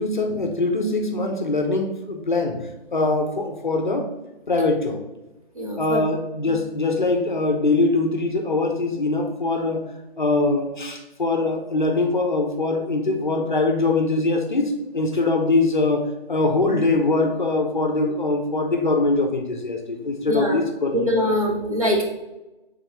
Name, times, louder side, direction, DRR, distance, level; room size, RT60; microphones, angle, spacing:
voice 1, 0.0-4.1 4.5-5.0 5.8-9.9 10.2-21.6, left 2 dB, 50° left, 4 dB, 0.5 m, -23 dB
voice 2, 5.6-6.1 20.3-20.6 20.9-22.0, equal, 35° right, -1 dB, 0.6 m, -23 dB
3.6 x 3.3 x 3.1 m, 1.0 s
figure-of-eight pair, 175°, 31 cm